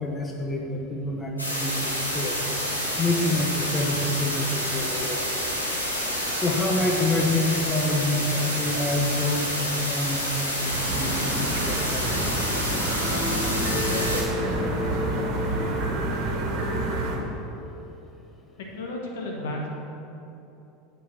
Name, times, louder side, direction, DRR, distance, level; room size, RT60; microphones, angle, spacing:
voice 1, 0.0-2.4 3.0-5.3 6.3-12.3 16.3-16.5, left 1 dB, 20° left, 0 dB, 0.9 m, -27 dB
sound 1, 1.4-14.2, equal, 85° left, 1.4 m, -28 dB
sound 2, 10.7-17.2, right 1 dB, 45° right, 1.7 m, -27 dB
voice 2, 18.7-19.7, left 1 dB, 65° left, -1 dB, 1.5 m, -32 dB
9.2 x 5.4 x 6.0 m, 2.9 s
figure-of-eight pair, 75°, 0 cm